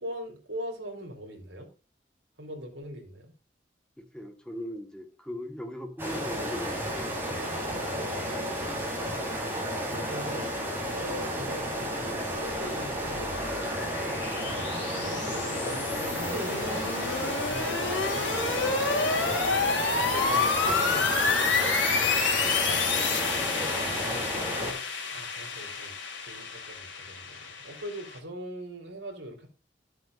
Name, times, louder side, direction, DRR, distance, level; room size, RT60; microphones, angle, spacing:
voice 1, 0.0-1.7 2.4-3.3 7.3-9.3 9.8-10.6 10.9-13.7 14.0-16.8 17.3-18.8 19.2-19.8 20.1-21.7 23.4-23.7 24.0-29.5, equal, 75° right, 3 dB, 3.7 m, -42 dB
voice 2, 4.0-7.1 13.9-14.1 19.1-19.3 22.9-23.4, equal, 5° left, 5 dB, 1.4 m, -40 dB
sound 1, 6.0-24.7, equal, 10° right, 3.9 m, -32 dB
sound 2, 12.4-28.2, left 4 dB, 80° left, 3.3 m, -29 dB
13.5 x 7.8 x 2.5 m, 0.34 s
head